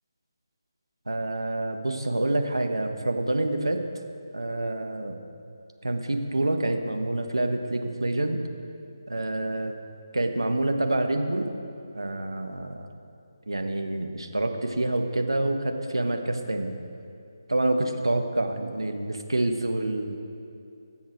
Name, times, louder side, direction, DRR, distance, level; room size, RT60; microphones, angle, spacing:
voice 1, 1.1-3.8 4.3-5.2 5.8-8.4 9.1-9.8 10.1-11.5 11.9-12.9 13.5-16.7 17.5-20.2, right 2 dB, 80° right, 5 dB, 1.4 m, -27 dB
19.5 x 7.4 x 4.5 m, 2.7 s
figure-of-eight pair, 150°, 2 cm